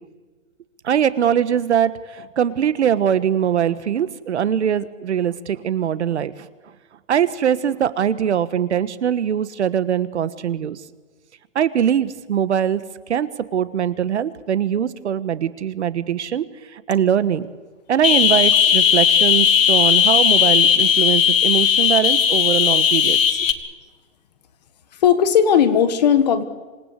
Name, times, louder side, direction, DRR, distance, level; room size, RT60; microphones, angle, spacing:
voice 1, 0.8-6.3 7.1-10.8 11.5-12.8 13.1-16.4 16.7-17.5 17.9-23.5, right 9 dB, 60° right, 15 dB, 1.4 m, -21 dB
sound 1, 18.0-23.5, left 8 dB, 85° left, 2.0 m, -16 dB
voice 2, 24.9-26.4, left 8 dB, 30° left, 11 dB, 1.4 m, -16 dB
26.5 x 19.0 x 8.3 m, 1.4 s
hypercardioid pair, 175°, 39 cm